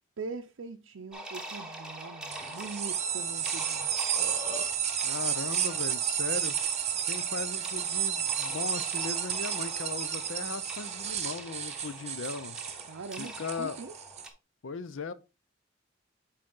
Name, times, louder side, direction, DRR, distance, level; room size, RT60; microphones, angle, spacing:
voice 1, 0.2-3.9 12.9-14.0, right 4 dB, 75° right, 0.5 m, -42 dB
sound 1, 1.1-14.3, right 1 dB, 5° right, 1.1 m, -44 dB
sound 2, 2.3-14.3, right 9 dB, 35° right, 0.8 m, -32 dB
Burping eructation, 3.9-4.7, left 3 dB, 35° left, 0.9 m, -40 dB
voice 2, 5.0-6.6 7.1-12.6 13.2-13.8 14.6-15.1, left 4 dB, 75° left, 0.6 m, -38 dB
7.7 x 4.2 x 3.7 m
head